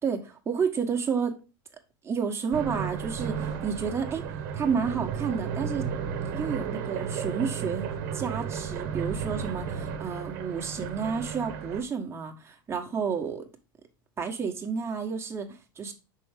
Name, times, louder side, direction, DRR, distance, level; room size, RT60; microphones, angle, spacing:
voice 1, 0.0-1.3 2.0-4.2 4.5-5.9 6.3-7.9 8.1-13.4 14.2-15.9, right 6 dB, 20° right, 1.5 m, -30 dB
sound 1, 2.5-11.8, right 7 dB, 65° right, 1.2 m, -33 dB
6.1 x 4.7 x 3.6 m
hypercardioid pair, 95°, 12 cm